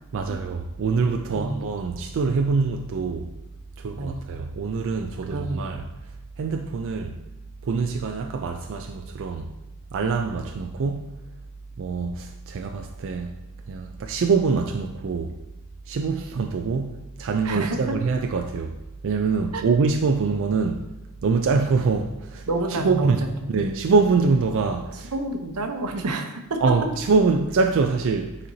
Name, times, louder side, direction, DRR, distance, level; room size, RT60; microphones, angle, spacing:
voice 1, 0.1-3.3 3.8-5.9 6.4-7.2 7.6-9.5 9.9-11.2 11.8-13.3 13.7-15.4 15.9-18.8 19.0-20.9 21.2-25.2 26.6-28.4, right 4 dB, 60° right, 0.4 m, -24 dB
voice 2, 1.3-1.6 3.9-4.2 5.3-5.8 17.4-18.0 19.5-19.6 22.5-23.5 25.1-26.6, right 2 dB, 85° right, 0.8 m, -29 dB
9.2 x 4.2 x 2.7 m
head